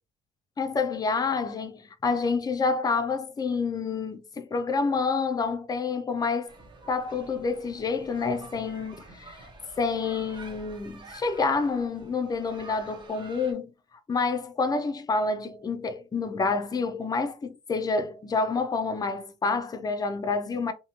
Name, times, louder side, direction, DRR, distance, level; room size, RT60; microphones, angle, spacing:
voice 1, 0.6-6.5 6.9-9.5 9.8-13.7 14.1-20.7, left 4 dB, 20° left, 0.4 m, -28 dB
sound 1, 6.5-13.5, right 3 dB, 25° right, 0.6 m, -48 dB
2.6 x 2.1 x 2.8 m
cardioid pair, 110°, 17 cm